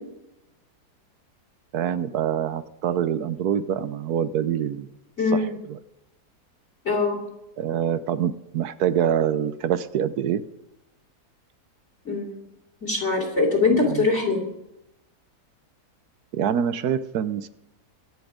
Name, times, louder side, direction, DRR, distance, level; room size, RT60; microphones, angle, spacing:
voice 1, 1.7-4.9 7.6-10.4 13.8-14.1 16.3-17.5, right 9 dB, 70° right, 14 dB, 1.2 m, -25 dB
voice 2, 5.2-5.5 6.8-7.2 12.0-12.4 12.8-14.4, left 3 dB, 40° left, 0 dB, 3.4 m, -22 dB
23.5 x 8.4 x 5.0 m, 0.89 s
omnidirectional pair, 1.7 m